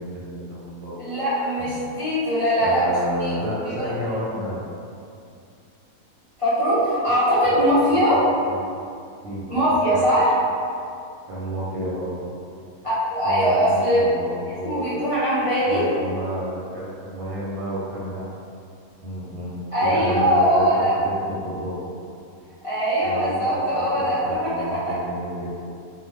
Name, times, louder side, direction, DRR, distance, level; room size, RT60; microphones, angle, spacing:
voice 1, 0.0-1.8 2.6-4.6 7.4-7.6 7.9-8.6 9.2-10.1 11.3-12.3 13.2-15.0 15.7-18.3 19.0-21.8 23.0-25.5, equal, 85° right, -6 dB, 1.2 m, -31 dB
voice 2, 1.0-2.9 3.2-3.3 3.6-3.8 6.4-8.2 9.5-10.4 12.8-14.0 14.6-15.9 19.7-20.9 22.6-24.2 24.7-24.8, equal, 55° left, -14 dB, 0.3 m, -21 dB
2.5 x 2.2 x 3.3 m, 2.5 s
omnidirectional pair, 1.5 m